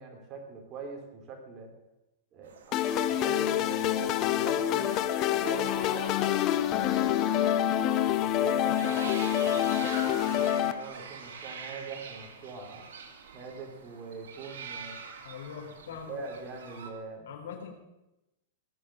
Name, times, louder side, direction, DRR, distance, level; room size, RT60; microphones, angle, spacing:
voice 1, 0.0-1.7 2.3-4.9 5.3-7.4 8.1-12.9 13.3-15.0 16.1-17.3, right 4 dB, 25° right, 1 dB, 3.6 m, -43 dB
sound 1, 2.4-16.9, right 5 dB, 80° right, 2.5 m, -46 dB
sound 2, 2.7-10.7, left 11 dB, 30° left, 0.8 m, -27 dB
voice 2, 15.2-16.2 17.2-17.7, left 7 dB, 75° left, 1 dB, 4.0 m, -42 dB
18.5 x 6.5 x 8.8 m, 0.96 s
supercardioid pair, 160°, 0 cm